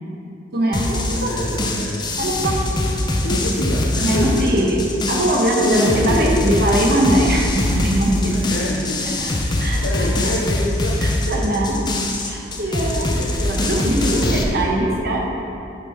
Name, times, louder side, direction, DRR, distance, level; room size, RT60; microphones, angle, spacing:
voice 1, 0.5-1.3 2.2-2.7 4.0-4.8 5.1-8.4 9.2-10.1 11.0-11.8 12.2-15.3, right 1 dB, 55° right, -1 dB, 1.0 m, -21 dB
sound 1, 0.7-14.4, left 1 dB, 25° left, 0.6 m, -22 dB
voice 2, 1.1-2.1 3.1-4.7 5.6-6.6 8.3-9.2 9.6-11.9 12.6-13.5 14.0-14.9, left 1 dB, 80° left, -3 dB, 0.6 m, -27 dB
8.7 x 3.7 x 4.4 m, 2.7 s
head